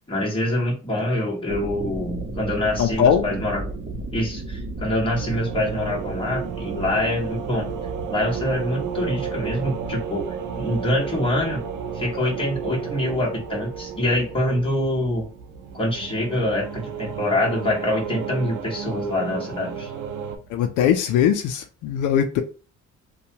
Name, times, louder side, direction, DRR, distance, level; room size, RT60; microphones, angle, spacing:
voice 1, 0.1-3.6 4.1-7.7 8.1-10.3 10.6-11.6 11.9-15.3 15.7-19.9, left 1 dB, 15° left, 1.3 m, -25 dB
sound 1, 1.4-21.0, right 2 dB, 30° right, 0.7 m, -37 dB
voice 2, 2.8-3.3 20.5-22.4, left 9 dB, 85° left, 0.5 m, -20 dB
sound 2, 5.1-20.4, right 7 dB, 85° right, 0.6 m, -33 dB
2.7 x 2.3 x 2.8 m
cardioid pair, 90°, 30 cm